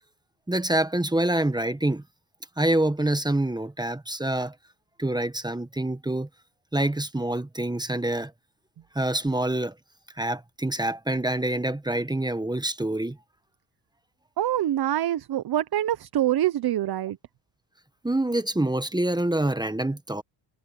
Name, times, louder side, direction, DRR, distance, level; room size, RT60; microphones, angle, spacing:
voice 1, 0.5-2.0 2.6-4.5 5.0-6.3 6.7-8.3 8.9-9.7 10.2-13.2 18.0-20.2, right 1 dB, 10° right, 1.3 m, -26 dB
voice 2, 14.4-17.2, right 12 dB, 55° right, 0.9 m, -25 dB
cardioid pair, 90°, 45 cm